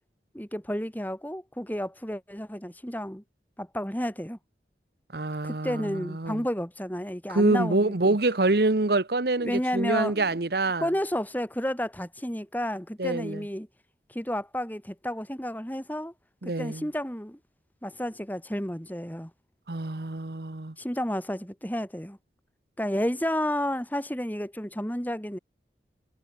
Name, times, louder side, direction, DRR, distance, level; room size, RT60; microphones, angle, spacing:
voice 1, 0.3-3.2 3.6-4.4 5.4-8.2 9.4-10.4 10.8-13.7 14.1-16.1 16.4-17.4 17.8-19.3 20.8-22.2 22.8-25.4, equal, 10° left, 4.4 m, -31 dB
voice 2, 5.1-6.4 7.3-10.9 13.0-13.4 16.4-16.9 19.7-20.7, right 2 dB, 65° right, 1.1 m, -26 dB
head